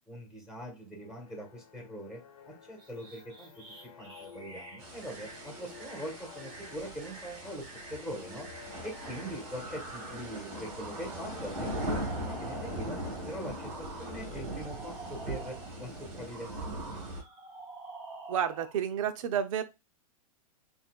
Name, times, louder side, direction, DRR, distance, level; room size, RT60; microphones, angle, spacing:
voice 1, 0.1-2.2 2.4-8.5 8.8-13.0 13.2-17.1, equal, 5° right, 1.6 m, -42 dB
sound 1, 1.0-15.1, left 5 dB, 85° left, 1.1 m, -52 dB
sound 2, 2.8-13.0 13.4-15.9 16.3-18.8, right 3 dB, 25° right, 2.1 m, -48 dB
sound 3, 4.8-17.2, right 1 dB, 50° right, 2.4 m, -40 dB
voice 2, 18.3-19.6, right 9 dB, 65° right, 0.7 m, -30 dB
5.6 x 2.7 x 2.4 m
hypercardioid pair, 130°, 19 cm